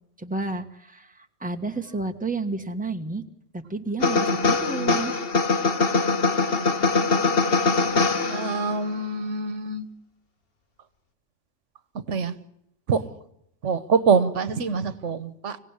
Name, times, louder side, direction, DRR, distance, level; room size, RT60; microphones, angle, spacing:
voice 1, 0.2-1.1 1.4-3.2 3.5-5.1, right 3 dB, 5° right, 1.5 m, -31 dB
sound 1, 4.0-8.8, left 3 dB, 55° left, 1.6 m, -22 dB
voice 2, 6.3-7.3 8.3-9.9 11.9-12.4 12.9-13.0 13.6-15.6, right 5 dB, 80° right, 1.4 m, -26 dB
26.0 x 17.0 x 9.7 m
omnidirectional pair, 1.2 m